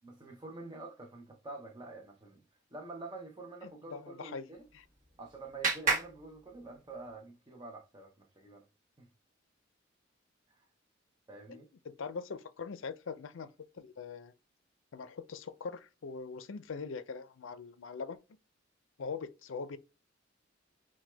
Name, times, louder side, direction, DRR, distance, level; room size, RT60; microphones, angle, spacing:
voice 1, 0.0-2.4 2.7-4.7 5.2-8.7 9.0-9.1 10.5-10.7 11.3-11.7, right 3 dB, 20° right, 0.6 m, -47 dB
voice 2, 3.6-4.8 11.5-14.3 14.9-18.2 19.0-19.8, left 5 dB, 75° left, 0.5 m, -42 dB
Clapping, 4.5-7.1, right 4 dB, 40° right, 1.1 m, -35 dB
6.1 x 2.2 x 3.3 m
head